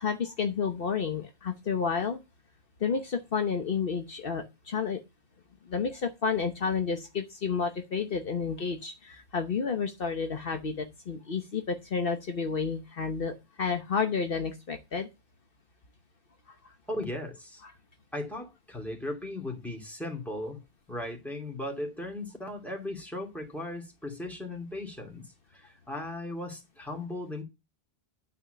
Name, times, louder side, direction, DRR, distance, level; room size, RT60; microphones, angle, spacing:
voice 1, 0.0-2.2 2.8-5.0 5.7-15.1 17.6-17.7, left 5 dB, 65° left, 1.2 m, -31 dB
voice 2, 16.9-17.6 18.1-20.6 20.9-27.4, left 1 dB, ahead, 2.7 m, -37 dB
9.2 x 4.3 x 6.6 m
omnidirectional pair, 1.0 m